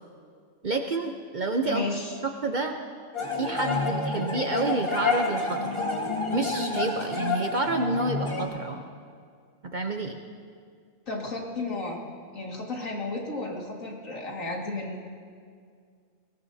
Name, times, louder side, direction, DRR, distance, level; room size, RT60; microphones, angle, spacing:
voice 1, 0.6-1.9 2.2-2.7 3.4-5.8 6.3-8.8 9.7-10.2, right 2 dB, 45° right, 4 dB, 0.7 m, -29 dB
voice 2, 1.7-2.1 11.1-12.0 12.3-15.0, left 2 dB, 75° left, -1 dB, 2.4 m, -33 dB
sound 1, 3.1-8.5, left 3 dB, 25° left, 1.5 m, -29 dB
21.0 x 18.0 x 2.7 m, 2.1 s
omnidirectional pair, 1.4 m